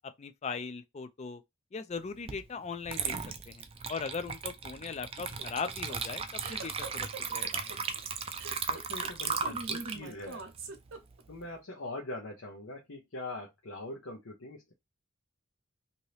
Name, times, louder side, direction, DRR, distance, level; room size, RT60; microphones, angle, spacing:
voice 1, 0.2-1.4 1.7-3.2 3.5-7.7, left 5 dB, 35° left, 0.4 m, -39 dB
Water / Liquid, 2.3-2.4 2.9-11.4, right 6 dB, 30° right, 0.4 m, -36 dB
sound 1, 5.2-11.4, right 3 dB, 80° right, 0.8 m, -44 dB
voice 2, 8.7-10.4 11.3-14.7, left 2 dB, 75° left, 0.8 m, -42 dB
2.8 x 2.7 x 3.2 m
head